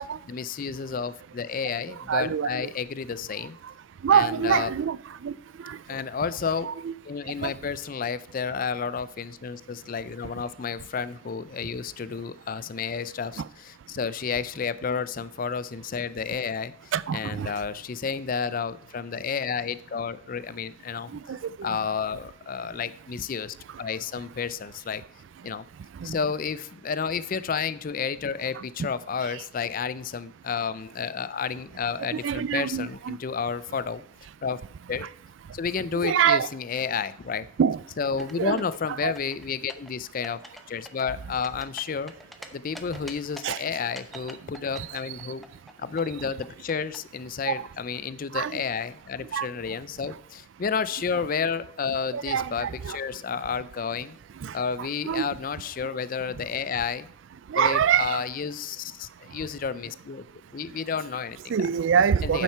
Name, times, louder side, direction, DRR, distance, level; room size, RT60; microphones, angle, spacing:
voice 1, 0.3-3.6 4.1-4.7 5.9-6.7 7.1-13.4 13.9-21.1 21.6-25.0 25.4-25.7 26.0-34.0 34.4-34.6 34.9-35.1 35.5-37.5 38.0-40.4 40.7-42.1 42.5-45.5 45.8-54.2 54.5-57.1 57.5-60.2 60.5-61.5 62.2-62.4, left 6 dB, 40° left, 0.4 m, -31 dB
voice 2, 2.1-2.7 4.0-5.0 5.2-5.3 5.6-5.8 6.6-6.9 7.4-7.5 13.4-13.5 16.9-17.5 21.1-21.7 28.5-28.6 32.1-33.2 35.0-35.1 36.0-36.5 37.6-37.8 38.4-38.6 38.9-39.1 43.4-43.6 44.7-44.9 47.5-47.6 48.3-48.6 49.3-49.5 51.1-51.2 52.1-53.0 54.4-55.3 57.5-58.2 61.5-62.4, right 7 dB, 65° right, 0.3 m, -25 dB
sound 1, 38.0-38.8 39.2-39.9 40.2-40.6 40.9-42.5 42.7-43.6 44.0-47.0, equal, ahead, 0.7 m, -44 dB
9.2 x 7.2 x 4.5 m
head